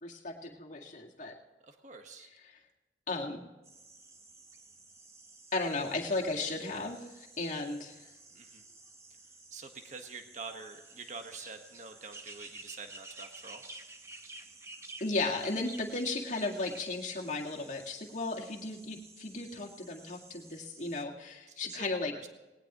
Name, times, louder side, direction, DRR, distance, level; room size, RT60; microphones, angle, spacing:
voice 1, 0.0-1.4 3.1-3.5 5.5-8.0 15.0-22.2, left 3 dB, 45° left, -1 dB, 2.0 m, -35 dB
voice 2, 1.6-2.3 8.3-8.6 9.5-13.6 21.5-21.9 22.2-22.3, right 4 dB, 45° right, 5 dB, 1.4 m, -46 dB
sound 1, 3.6-21.0, right 2 dB, 15° right, 1.0 m, -52 dB
19.0 x 18.5 x 3.0 m, 1.1 s
head